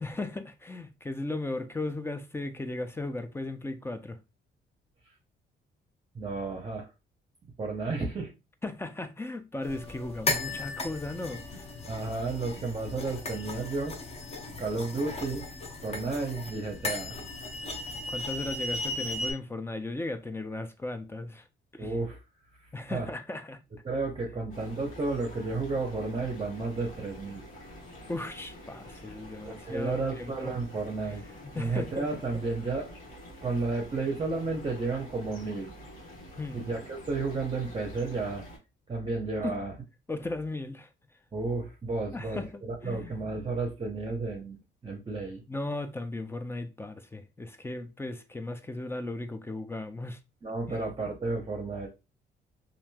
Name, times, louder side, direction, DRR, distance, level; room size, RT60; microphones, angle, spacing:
voice 1, 0.0-4.2 8.6-11.7 18.1-21.5 21.7-22.0 22.7-23.6 28.1-30.6 31.0-32.1 36.4-36.7 39.4-39.6 40.1-40.9 42.1-43.2 45.5-50.2 50.7-50.8, left 2 dB, 10° left, 0.4 m, -36 dB
voice 2, 6.1-6.9 7.6-8.3 11.9-13.9 14.6-15.4 15.8-17.2 21.8-22.2 22.9-23.1 23.8-27.5 29.4-31.2 31.6-32.9 33.4-35.7 36.5-38.4 38.9-39.7 41.3-45.4 50.4-51.9, right 3 dB, 30° right, 0.7 m, -32 dB
sound 1, 9.6-19.3, left 2 dB, 30° left, 0.7 m, -36 dB
sound 2, 24.5-38.6, left 1 dB, 75° left, 1.4 m, -48 dB
3.0 x 2.5 x 2.2 m
cardioid pair, 90°, 20 cm